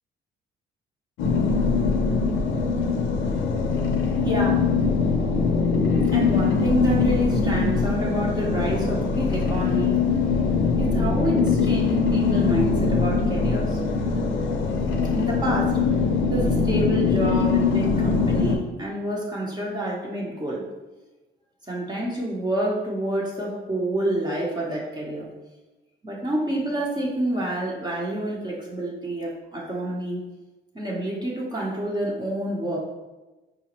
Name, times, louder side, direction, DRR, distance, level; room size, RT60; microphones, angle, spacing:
sound 1, 1.2-18.6, left 5 dB, 80° left, 0.5 m, -22 dB
voice 1, 4.2-4.7 5.3-5.6 6.1-10.0 10.8-13.8 15.1-15.9 16.3-20.7 21.7-25.3 26.0-30.2 30.7-32.8, right 1 dB, 20° right, -4 dB, 0.8 m, -28 dB
4.9 x 2.1 x 2.9 m, 1.1 s
cardioid pair, 90°, 20 cm